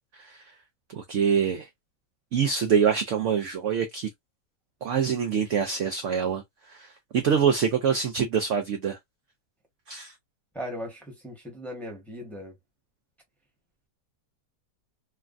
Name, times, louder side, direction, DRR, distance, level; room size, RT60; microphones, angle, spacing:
voice 1, 0.9-1.7 2.3-4.1 4.8-6.4 6.7-9.0 9.9-10.1, right 7 dB, 70° right, 0.7 m, -25 dB
voice 2, 10.5-12.5, equal, ahead, 0.9 m, -38 dB
3.1 x 2.3 x 2.4 m
omnidirectional pair, 1.8 m